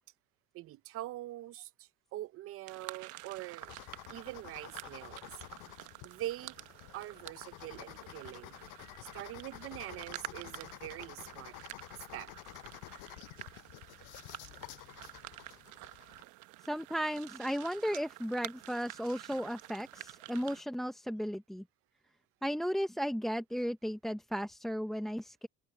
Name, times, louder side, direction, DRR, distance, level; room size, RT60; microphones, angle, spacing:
voice 1, 0.5-3.7 4.1-5.3 6.0-6.6 6.9-11.5 12.1-12.3, right 15 dB, 45° right, 0.6 m, -44 dB
sound 1, 2.7-20.6, right 19 dB, 70° right, 1.1 m, -49 dB
sound 2, 3.6-16.2, left 26 dB, 80° left, 5.8 m, -51 dB
voice 2, 16.7-21.6 22.4-25.5, equal, ahead, 0.6 m, -35 dB
open air
cardioid pair, 150°, 31 cm